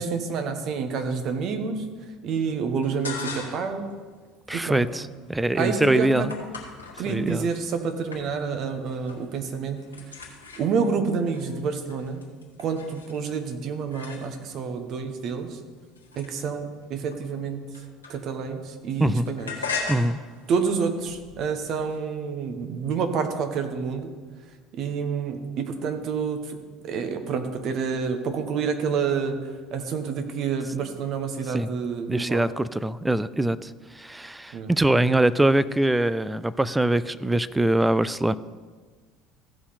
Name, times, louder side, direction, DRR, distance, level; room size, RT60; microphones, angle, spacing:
voice 1, 0.0-1.8 2.2-3.9 4.5-4.8 5.5-6.1 7.0-9.8 10.6-12.2 12.6-15.6 16.2-17.6 18.1-19.7 20.5-24.1 24.8-26.6 26.8-32.5 34.5-34.7, right 5 dB, 50° right, 6 dB, 1.4 m, -28 dB
sound 1, 2.8-3.8 4.1-7.7 8.1-8.6 8.9-9.3 9.6-14.7 15.3-18.5 18.8-22.0, left 4 dB, 90° left, 1.4 m, -39 dB
voice 2, 4.5-6.3 7.1-7.5 19.0-19.3 19.9-20.2 31.5-31.7 32.1-38.4, right 1 dB, 10° right, 17 dB, 0.4 m, -23 dB
15.5 x 5.6 x 4.3 m, 1.5 s
hypercardioid pair, 65°, 0 cm